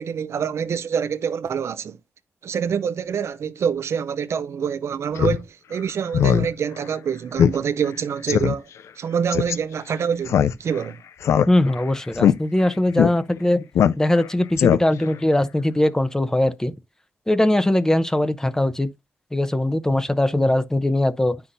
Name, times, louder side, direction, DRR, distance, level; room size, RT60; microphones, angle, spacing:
voice 1, 0.0-2.0 2.4-8.6 9.0-11.0, right 7 dB, 75° right, 0.6 m, -26 dB
Speech synthesizer, 5.2-5.4 5.7-5.8 6.1-6.5 6.8-6.9 7.4-7.6 7.9-8.0 8.3-8.5 9.3-9.6 10.3-10.8 11.2-11.8 12.1-12.3 13.0-13.1 13.7-14.2 14.6-15.1, left 9 dB, 90° left, 0.4 m, -18 dB
voice 2, 11.5-13.6 14.0-16.7 17.3-18.9 19.3-21.4, left 1 dB, 10° left, 0.7 m, -20 dB
9.6 x 5.7 x 2.6 m
cardioid pair, 75°, 5 cm